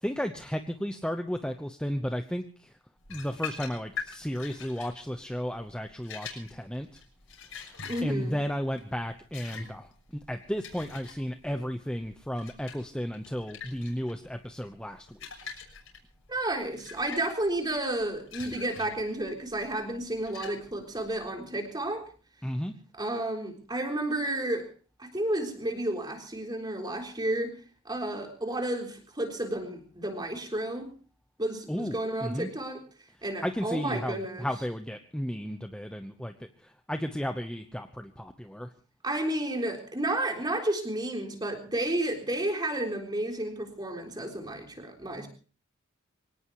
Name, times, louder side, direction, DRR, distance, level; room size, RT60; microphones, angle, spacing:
voice 1, 0.0-2.7 3.1-7.0 7.5-9.9 10.3-15.2 22.4-22.7 31.7-32.5 33.4-38.7, equal, 5° left, 6 dB, 0.9 m, -34 dB
sound 1, 3.0-21.2, left 6 dB, 70° left, 6.6 m, -45 dB
voice 2, 7.9-8.4 16.3-22.0 22.9-24.7 25.0-27.5 27.9-30.9 31.4-32.8 33.2-34.5 39.0-45.3, right 1 dB, 20° right, 2 dB, 3.8 m, -31 dB
24.5 x 18.5 x 3.1 m, 0.38 s
head